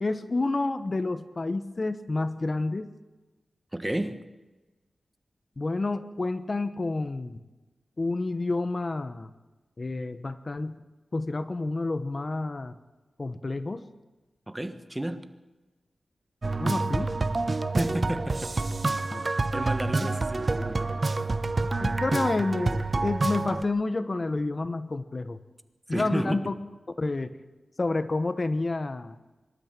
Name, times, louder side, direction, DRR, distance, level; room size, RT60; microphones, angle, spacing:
voice 1, 0.0-2.9 5.6-7.4 8.0-9.3 9.8-10.8 11.1-12.8 13.2-13.8 16.6-17.1 19.1-19.2 20.0-20.2 21.8-25.4 25.9-26.5 27.0-27.4 27.8-29.1, left 2 dB, 40° left, 11 dB, 1.0 m, -29 dB
voice 2, 3.7-4.2 14.5-15.3 17.8-18.5 19.3-21.3 25.9-26.5, right 1 dB, 15° right, 10 dB, 1.3 m, -32 dB
sound 1, 16.4-23.6, right 3 dB, 40° right, 0.9 m, -28 dB
24.5 x 12.5 x 9.0 m, 1.2 s
wide cardioid pair, 85°, 0 cm